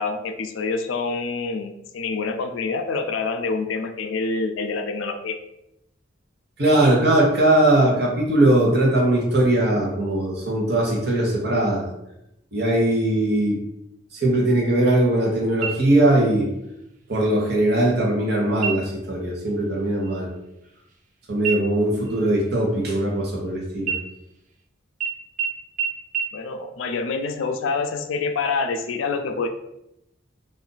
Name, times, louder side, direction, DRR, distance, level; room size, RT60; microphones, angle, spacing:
voice 1, 0.0-5.4 26.3-29.5, left 4 dB, 80° left, 6 dB, 0.4 m, -26 dB
voice 2, 6.6-11.9 12.5-13.6 14.1-16.5 17.1-20.3 21.3-24.0, right 1 dB, 55° right, -2 dB, 0.9 m, -20 dB
sound 1, 15.6-16.3 16.7-16.8 17.3-17.8 18.5-19.1 19.5-19.7 20.0-21.1 21.4-23.4 23.8-24.6 25.0-25.1 25.4-25.5 25.8-25.9 26.1-26.2, right 7 dB, 40° right, 0.4 m, -30 dB
2.5 x 2.4 x 3.8 m, 0.84 s
head